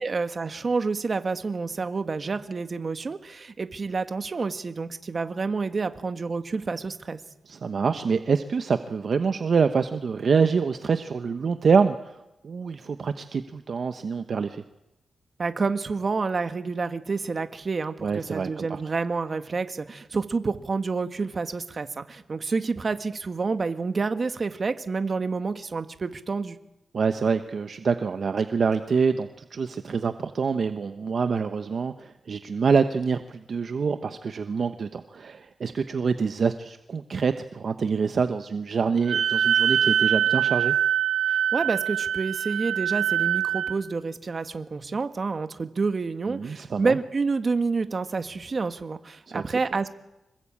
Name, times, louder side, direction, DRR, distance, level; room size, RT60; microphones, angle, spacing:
voice 1, 0.0-7.2 15.4-26.6 41.3-49.9, right 4 dB, 40° right, 9 dB, 1.7 m, -28 dB
voice 2, 7.5-14.6 18.0-18.8 26.9-40.7 46.3-47.0 49.3-49.6, right 5 dB, 60° right, 9 dB, 1.0 m, -26 dB
Wind instrument woodwind instrument, 39.1-43.8, right 10 dB, 85° right, 1.5 m, -24 dB
26.0 x 22.0 x 8.7 m, 0.92 s
wide cardioid pair, 105°, 0 cm